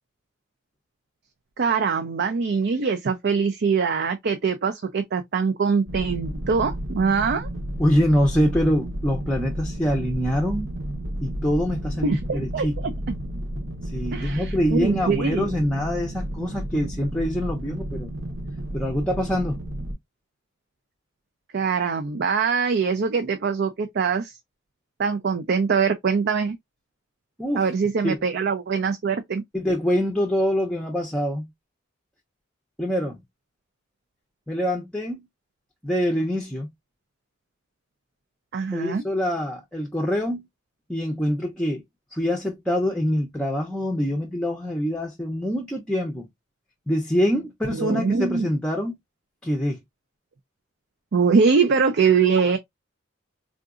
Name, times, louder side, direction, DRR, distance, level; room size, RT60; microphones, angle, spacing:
voice 1, 1.6-7.5 12.0-12.9 14.1-15.5 21.5-24.4 25.0-26.6 27.6-29.4 38.5-39.0 47.7-48.5 51.1-52.6, right 5 dB, 55° right, 0.4 m, -23 dB
sound 1, 5.9-19.9, right 1 dB, 85° right, 1.1 m, -32 dB
voice 2, 7.8-10.7 11.2-12.9 13.9-18.1 18.7-19.7 27.4-27.6 28.0-28.2 29.5-31.5 32.8-33.2 34.5-35.2 35.8-36.7 38.7-40.4 40.9-41.8 42.1-46.3 46.9-48.9 49.4-49.8, equal, 5° left, 0.6 m, -25 dB
3.7 x 2.5 x 2.4 m
head